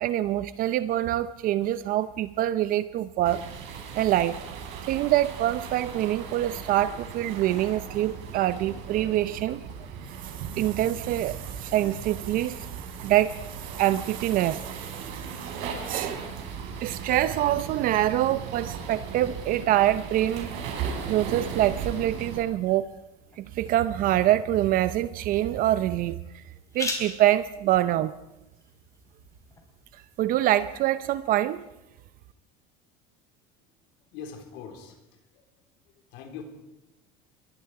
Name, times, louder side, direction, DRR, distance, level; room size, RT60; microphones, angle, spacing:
voice 1, 0.0-3.4 4.0-4.4 4.8-9.6 10.6-12.7 13.0-13.4 13.8-14.6 15.9-16.2 16.8-20.5 21.1-22.9 23.4-26.2 26.7-28.1 30.2-31.6, right 13 dB, 45° right, 14 dB, 0.6 m, -25 dB
sound 1, 3.2-22.4, right 6 dB, 65° right, 5.5 m, -37 dB
sound 2, 22.7-30.2, left 3 dB, 15° left, 4.0 m, -42 dB
voice 2, 34.1-35.0 35.3-35.4 36.1-36.4, left 7 dB, 65° left, 4 dB, 3.9 m, -41 dB
27.0 x 23.0 x 4.8 m, 0.94 s
cardioid pair, 155°, 20 cm